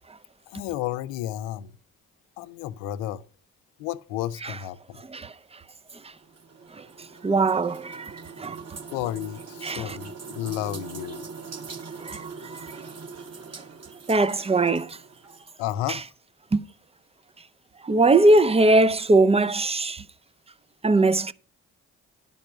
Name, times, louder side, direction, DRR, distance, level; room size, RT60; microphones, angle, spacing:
voice 1, 0.5-1.7 2.4-3.2 3.8-5.0 8.9-11.3 15.6-16.0, left 13 dB, 85° left, 0.5 m, -32 dB
sound 1, 5.9-15.5, right 5 dB, 45° right, 1.6 m, -42 dB
voice 2, 7.2-8.1 8.4-8.6 9.6-10.0 12.0-12.2 14.1-14.9 15.9-16.0 16.5-16.6 17.8-20.0 20.8-21.3, right 2 dB, 15° right, 0.6 m, -20 dB
10.5 x 5.4 x 6.0 m
hypercardioid pair, 40°, 37 cm